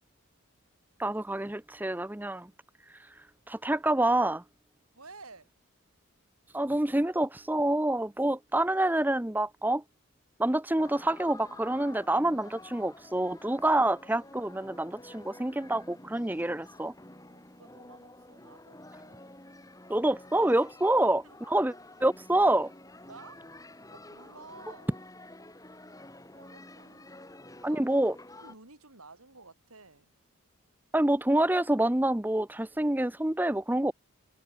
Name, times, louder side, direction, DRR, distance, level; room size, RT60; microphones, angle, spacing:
voice 1, 1.0-2.5 3.5-4.4 6.5-9.8 10.4-16.9 19.9-21.7 22.0-22.7 27.6-28.1 30.9-33.9, right 1 dB, 10° right, 0.6 m, -27 dB
voice 2, 4.9-5.5 17.3-19.2 21.2-21.4 23.1-23.5 23.9-24.9 26.4-27.2 27.6-28.0 28.4-30.1, right 3 dB, 90° right, 6.6 m, -52 dB
sound 1, 10.8-28.5, left 1 dB, 15° left, 3.6 m, -50 dB
head